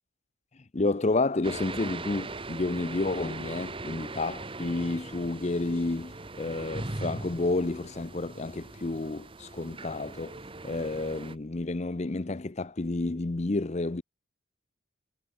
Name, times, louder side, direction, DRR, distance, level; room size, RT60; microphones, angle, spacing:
voice 1, 0.7-10.4 10.6-14.0, left 2 dB, 30° left, 0.6 m, -30 dB
sound 1, 1.4-11.4, right 2 dB, 25° right, 1.1 m, -40 dB
head